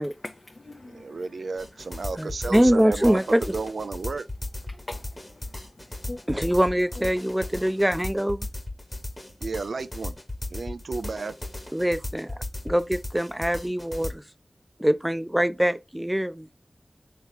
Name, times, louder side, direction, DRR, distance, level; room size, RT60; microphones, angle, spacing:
voice 1, 0.0-1.2 4.7-5.5 5.8-6.6 7.0-7.1, left 2 dB, 50° left, 0.5 m, -43 dB
voice 2, 0.9-4.2 9.4-10.2 10.5-11.3, right 4 dB, 85° right, 0.3 m, -32 dB
sound 1, 1.6-14.1, left 2 dB, 30° left, 1.0 m, -36 dB
voice 3, 2.2-3.5 6.3-8.5 11.7-12.3 12.6-14.2 14.8-16.5, equal, 10° right, 0.4 m, -23 dB
3.6 x 3.0 x 3.5 m
cardioid pair, 45°, 0 cm